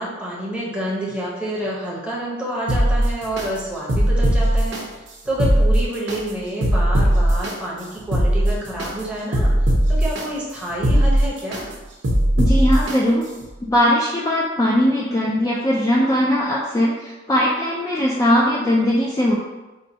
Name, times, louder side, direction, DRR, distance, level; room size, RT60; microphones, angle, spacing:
voice 1, 0.0-11.7, right 1 dB, 5° right, -5 dB, 0.7 m, -28 dB
sound 1, 2.7-3.5 3.9-4.8 5.3-6.2 6.6-7.5 8.0-8.9 9.3-10.2 10.7-11.6 12.0-13.0 13.4-13.5, equal, 70° right, 0.6 m, -18 dB
voice 2, 12.4-13.3 13.7-19.3, equal, 20° left, -5 dB, 0.3 m, -19 dB
4.3 x 2.2 x 2.7 m, 1.1 s
head